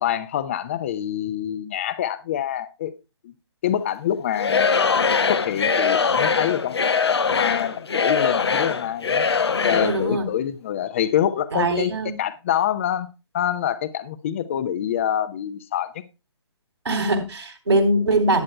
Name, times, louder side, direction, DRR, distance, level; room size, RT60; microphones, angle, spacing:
voice 1, 0.0-3.0 3.2-3.3 3.6-4.7 5.3-9.3 9.6-11.9 12.2-13.1 13.3-15.9, left 10 dB, 30° left, 0.7 m, -26 dB
Singing / Crowd, 4.4-10.0, left 5 dB, 65° left, 1.0 m, -22 dB
voice 2, 9.7-10.3 11.5-12.2 16.8-18.4, right 2 dB, 70° right, 3.5 m, -22 dB
18.5 x 9.7 x 2.2 m
figure-of-eight pair, 140°, 15 cm